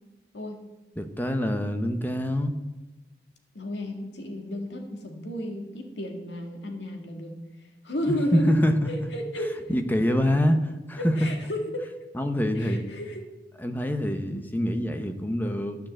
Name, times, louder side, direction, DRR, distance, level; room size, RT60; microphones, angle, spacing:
voice 1, 1.0-2.5 8.1-8.9 9.7-11.1 12.1-12.8 13.6-15.9, equal, 10° left, 7 dB, 0.8 m, -25 dB
voice 2, 3.6-7.4 7.8-8.6 8.9-9.7 11.0-11.9 12.5-13.3, left 1 dB, 85° left, 3 dB, 1.9 m, -33 dB
13.0 x 6.5 x 7.5 m, 1.1 s
head